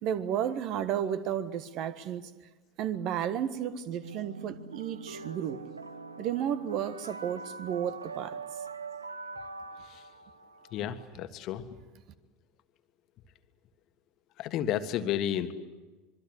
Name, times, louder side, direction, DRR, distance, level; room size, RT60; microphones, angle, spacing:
voice 1, 0.0-2.3 2.8-5.6 6.2-8.4, right 9 dB, 50° right, 1.6 m, -32 dB
sound 1, 4.0-11.0, right 4 dB, 85° right, 1.1 m, -43 dB
voice 2, 10.7-11.6 14.4-15.5, left 10 dB, 45° left, 1.7 m, -31 dB
26.0 x 23.5 x 8.2 m
figure-of-eight pair, 75°, 0 cm